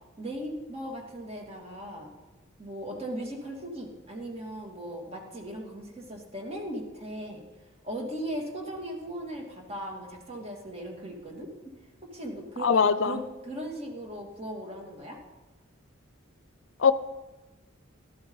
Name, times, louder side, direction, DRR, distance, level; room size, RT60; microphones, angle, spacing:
voice 1, 0.2-2.1 2.6-7.4 7.8-11.5 12.1-15.2, right 1 dB, 30° right, -1 dB, 2.6 m, -38 dB
voice 2, 12.6-13.2 16.8-16.9, left 6 dB, 65° left, 13 dB, 0.5 m, -21 dB
17.0 x 12.5 x 4.0 m, 1.2 s
head